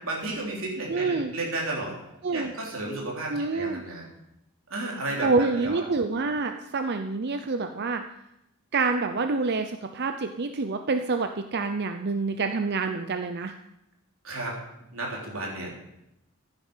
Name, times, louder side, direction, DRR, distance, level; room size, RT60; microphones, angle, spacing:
voice 1, 0.0-2.0 2.3-4.1 4.7-5.9 14.2-14.6 14.9-15.8, right 2 dB, 65° right, -2 dB, 3.8 m, -33 dB
voice 2, 0.9-1.3 2.2-2.5 3.3-3.8 5.2-8.0 8.7-13.5, right 3 dB, 50° right, 7 dB, 0.6 m, -27 dB
14.5 x 9.0 x 5.6 m, 0.84 s
head